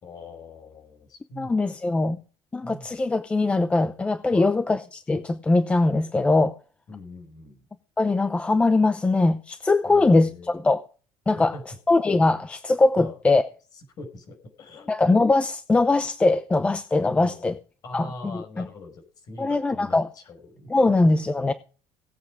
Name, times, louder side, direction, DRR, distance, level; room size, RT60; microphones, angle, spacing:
voice 1, 0.0-1.6 2.0-2.2 2.6-3.0 4.3-4.6 6.9-7.7 9.8-10.6 11.3-11.6 13.0-13.2 14.0-14.9 17.1-17.5 17.8-20.7, left 2 dB, 40° left, 5.1 m, -42 dB
voice 2, 1.4-2.2 2.5-6.5 8.0-10.8 11.3-11.5 11.9-13.4 14.9-17.6 17.9-18.6 19.4-20.1 20.7-21.5, left 2 dB, 10° left, 0.7 m, -21 dB
18.5 x 8.4 x 5.0 m
cardioid pair, 170°, 10 cm